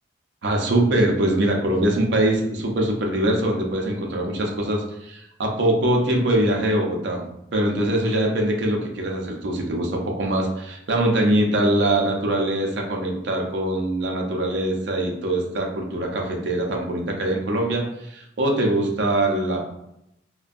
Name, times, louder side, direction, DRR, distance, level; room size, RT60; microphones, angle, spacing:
voice 1, 0.4-7.3 7.5-19.7, right 1 dB, 70° right, 1 dB, 0.5 m, -23 dB
2.5 x 2.1 x 2.4 m, 0.79 s
head